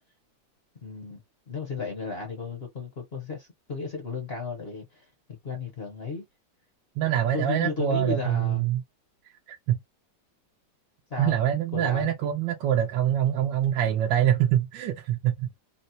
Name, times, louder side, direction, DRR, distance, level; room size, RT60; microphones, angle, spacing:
voice 1, 0.8-1.2 1.5-5.0 5.4-6.2 7.3-8.7 11.1-11.3 11.7-12.1, left 4 dB, 45° left, 0.9 m, -34 dB
voice 2, 7.0-8.8 9.5-9.8 11.2-15.6, right 11 dB, 80° right, 1.3 m, -25 dB
4.1 x 2.1 x 2.6 m
omnidirectional pair, 2.0 m